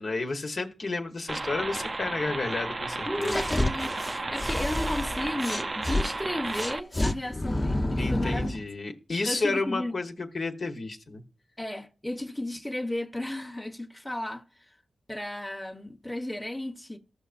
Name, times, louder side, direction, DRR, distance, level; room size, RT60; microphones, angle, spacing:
voice 1, 0.0-3.4 8.0-11.2, left 3 dB, 60° left, 1.2 m, -31 dB
sound 1, 1.3-6.8, right 2 dB, 40° right, 0.6 m, -33 dB
voice 2, 3.1-8.5 9.3-9.9 11.6-14.4 15.1-17.0, left 1 dB, 10° left, 1.1 m, -34 dB
sound 2, 3.2-6.1 6.5-8.6, left 1 dB, 30° left, 1.1 m, -29 dB
14.5 x 5.7 x 2.5 m
supercardioid pair, 40°, 0 cm